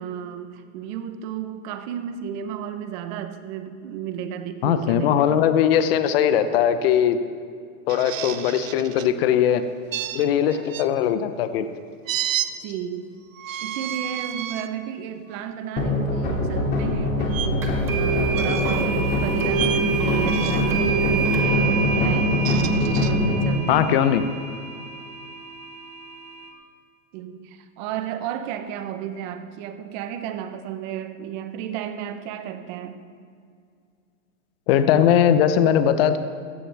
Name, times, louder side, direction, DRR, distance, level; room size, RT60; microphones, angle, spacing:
voice 1, 0.0-5.2 12.6-13.1 13.6-24.1 27.1-33.1, right 9 dB, 35° right, 9 dB, 0.9 m, -33 dB
voice 2, 4.6-7.2 7.9-9.6 10.1-11.7 23.7-24.2 34.7-36.2, left 9 dB, 45° left, 10 dB, 0.9 m, -20 dB
sound 1, 7.9-9.1 9.9-10.9 12.1-12.5 13.3-14.7 15.3-15.5 17.3-17.5 18.3-18.9 19.5-19.8 20.2-20.8 22.2-23.1, right 11 dB, 70° right, 0.9 m, -31 dB
sound 2, 15.8-23.4, left 1 dB, 25° left, 2.6 m, -23 dB
sound 3, 17.6-26.5, right 6 dB, 5° right, 0.3 m, -28 dB
16.0 x 15.0 x 3.5 m, 2.3 s
hypercardioid pair, 145°, 42 cm